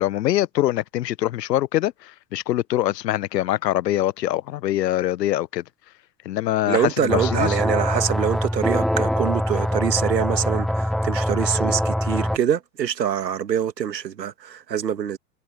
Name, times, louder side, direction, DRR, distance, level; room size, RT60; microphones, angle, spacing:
voice 1, 0.0-5.6 6.3-7.6, left 14 dB, 75° left, 0.7 m, -23 dB
voice 2, 6.7-15.2, right 9 dB, 80° right, 2.0 m, -25 dB
sound 1, 7.1-12.4, equal, ahead, 0.5 m, -23 dB
hypercardioid pair, 95°, 49 cm